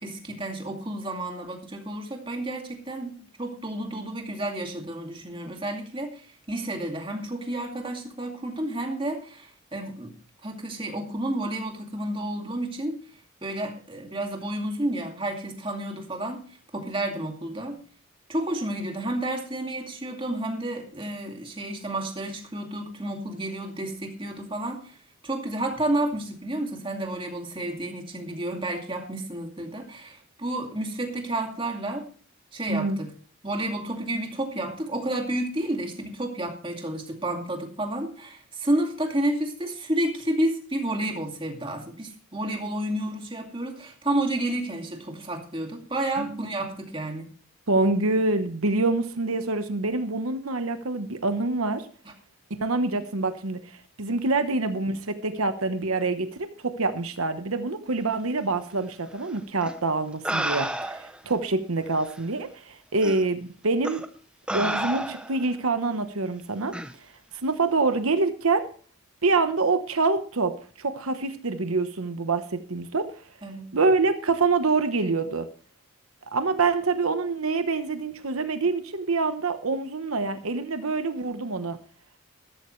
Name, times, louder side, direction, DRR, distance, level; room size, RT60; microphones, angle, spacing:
voice 1, 0.0-10.1 10.4-13.0 13.4-16.4 16.7-17.8 18.3-24.9 25.2-32.1 32.5-33.1 33.4-47.3 73.4-73.7, right 1 dB, 25° right, 2 dB, 2.3 m, -31 dB
voice 2, 32.7-33.0 46.2-46.4 47.7-51.9 52.5-64.0 64.5-66.8 67.4-68.7 69.2-73.1 73.7-75.5 76.3-81.8, right 3 dB, 90° right, 9 dB, 1.1 m, -26 dB
sound 1, 59.6-59.7 60.2-61.2 62.1-62.2 63.0-63.2 63.8-64.1 64.5-65.4 66.7-66.9, right 1 dB, 5° right, 0.8 m, -30 dB
14.0 x 13.5 x 3.2 m, 0.40 s
head